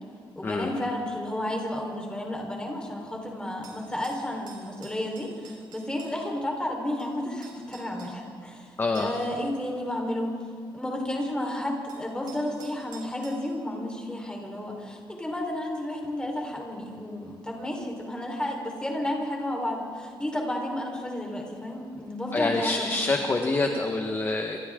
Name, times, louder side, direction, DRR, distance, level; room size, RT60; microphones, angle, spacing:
voice 1, 0.3-10.4 10.7-22.9, left 1 dB, 10° left, 0 dB, 4.4 m, -32 dB
sound 1, 3.4-6.1 7.0-7.1 7.4-8.1 9.0-9.3 9.9-10.0 11.2-11.3 11.9-13.4, right 5 dB, 60° right, 6.5 m, -50 dB
voice 2, 8.8-9.2 22.3-24.6, left 3 dB, 25° left, 3 dB, 1.4 m, -26 dB
28.0 x 26.0 x 3.8 m, 2.3 s
wide cardioid pair, 145°, 8 cm